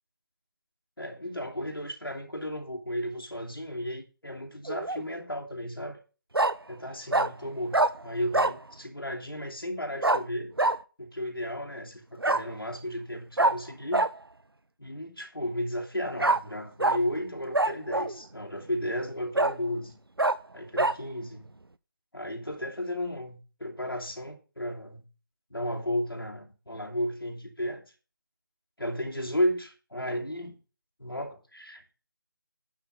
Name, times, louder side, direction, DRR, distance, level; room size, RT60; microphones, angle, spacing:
voice 1, 1.0-6.0 6.7-10.6 11.0-14.1 14.8-19.9 20.5-21.5 22.1-25.0 25.5-27.8 28.8-30.6 31.0-31.8, equal, 80° left, 0 dB, 2.7 m, -34 dB
Bark, 4.6-5.0 6.3-6.5 7.1-7.3 7.7-7.9 8.3-8.6 10.0-10.2 10.6-10.8 12.2-12.4 13.4-13.5 13.9-14.1 16.2-16.4 16.8-17.0 17.5-18.2 18.7-18.8 19.3-19.5 20.2-20.3 20.8-20.9, right 2 dB, 85° right, 0.6 m, -24 dB
10.0 x 6.0 x 5.5 m, 0.35 s
figure-of-eight pair, 160°, 12 cm